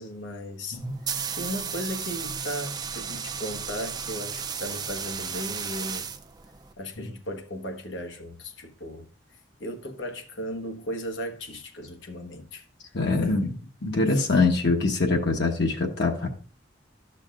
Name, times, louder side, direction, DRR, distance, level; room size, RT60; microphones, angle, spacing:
voice 1, 0.0-0.8 1.1-6.1 6.8-9.0 9.6-12.6 13.2-13.5 14.1-14.2, equal, 85° left, 1.3 m, -36 dB
sound 1, 0.7-6.7, right 6 dB, 20° right, 0.4 m, -34 dB
voice 2, 12.9-13.6 13.8-16.3, left 3 dB, 65° left, 1.2 m, -24 dB
12.5 x 6.5 x 2.5 m
head